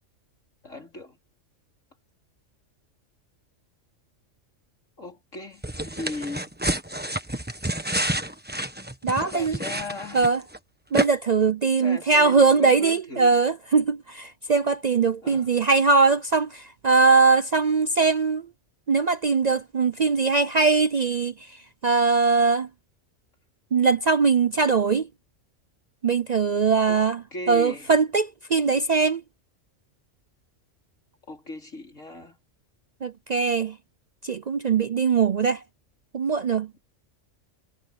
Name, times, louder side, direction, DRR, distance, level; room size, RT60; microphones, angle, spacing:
voice 1, 0.6-1.2 5.0-6.5 9.2-10.2 11.8-13.4 15.2-15.5 26.9-27.0 27.3-27.9 31.3-32.4, left 2 dB, 80° left, 4.7 m, -37 dB
sound 1, 5.6-10.6 10.9-11.1, right 1 dB, 10° right, 1.3 m, -29 dB
voice 2, 9.0-9.5 10.1-10.4 10.9-18.5 18.9-22.7 23.7-25.1 26.0-27.2 27.5-29.2 33.0-33.8 34.2-35.6 36.1-36.7, right 4 dB, 50° right, 0.5 m, -21 dB
omnidirectional pair, 1.3 m